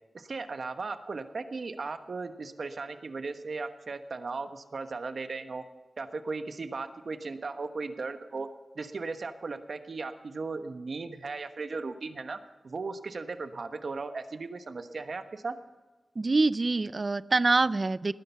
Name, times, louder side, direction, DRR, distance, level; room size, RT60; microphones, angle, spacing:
voice 1, 0.1-5.6 6.0-8.5 8.7-12.4 12.6-15.5, right 4 dB, 60° right, 8 dB, 1.2 m, -37 dB
voice 2, 16.2-18.1, right 3 dB, 40° right, 17 dB, 0.4 m, -25 dB
19.5 x 10.5 x 5.7 m, 1.2 s
wide cardioid pair, 115°, 0 cm